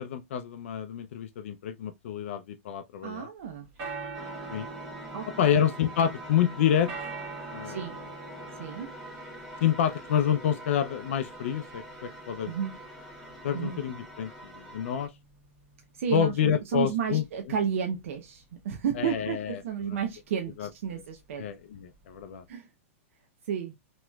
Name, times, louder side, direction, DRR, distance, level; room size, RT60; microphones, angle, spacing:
voice 1, 0.0-3.3 4.5-4.7 5.4-6.9 7.5-7.8 8.3-8.5 9.6-12.5 13.4-15.1 16.1-17.2 19.0-19.6 19.9-20.0 20.6-20.7 21.4-22.4, left 9 dB, 60° left, 0.4 m, -28 dB
voice 2, 3.0-3.7 5.1-5.5 7.6-7.9 8.5-8.9 12.4-12.7 13.5-13.8 15.9-21.5 22.5-22.7 23.5-23.7, right 8 dB, 65° right, 0.6 m, -32 dB
sound 1, 3.4-22.5, right 4 dB, 35° right, 1.3 m, -46 dB
sound 2, 4.1-15.1, right 1 dB, ahead, 0.7 m, -44 dB
2.9 x 2.9 x 2.2 m
supercardioid pair, 165°, 8 cm